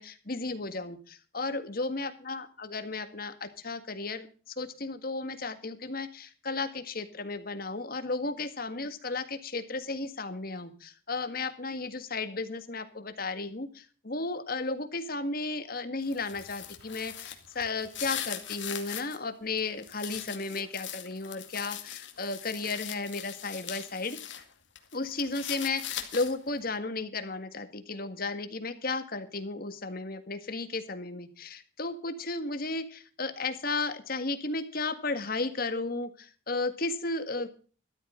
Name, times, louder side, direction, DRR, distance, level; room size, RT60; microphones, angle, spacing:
voice 1, 0.0-24.2 24.9-37.5, left 3 dB, 50° left, 10 dB, 1.8 m, -34 dB
sound 1, 16.0-19.2 19.6-24.4 24.8-26.5, left 11 dB, 70° left, 2.3 m, -40 dB
13.5 x 13.0 x 3.8 m, 0.39 s
head